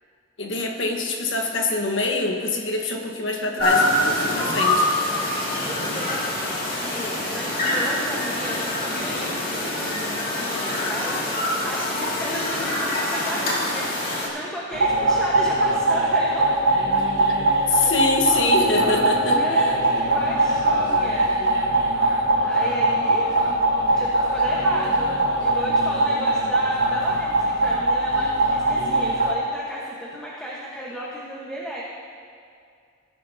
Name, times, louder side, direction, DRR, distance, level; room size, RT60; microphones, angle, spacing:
voice 1, 0.4-4.9 17.7-19.7, left 3 dB, 75° left, 2 dB, 1.4 m, -25 dB
sound 1, 3.6-14.3, left 1 dB, 50° left, 2.5 m, -25 dB
voice 2, 5.6-6.3 6.8-16.6 17.4-17.5 17.8-18.3 19.4-21.4 22.4-23.6 23.9-25.1 25.4-31.8, equal, 5° left, -6 dB, 1.3 m, -34 dB
sound 2, 14.7-29.3, right 2 dB, 75° right, 1.2 m, -21 dB
19.5 x 10.5 x 2.8 m, 2.3 s
head